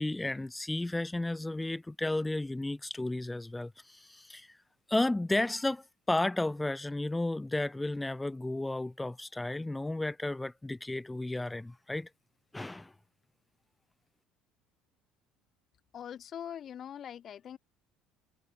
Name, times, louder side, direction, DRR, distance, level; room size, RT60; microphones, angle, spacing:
voice 1, 0.0-4.5 4.9-12.1 12.5-12.9, left 2 dB, 10° left, 0.3 m, -33 dB
voice 2, 15.9-17.6, left 9 dB, 45° left, 1.6 m, -42 dB
supercardioid pair, 90°, 0 cm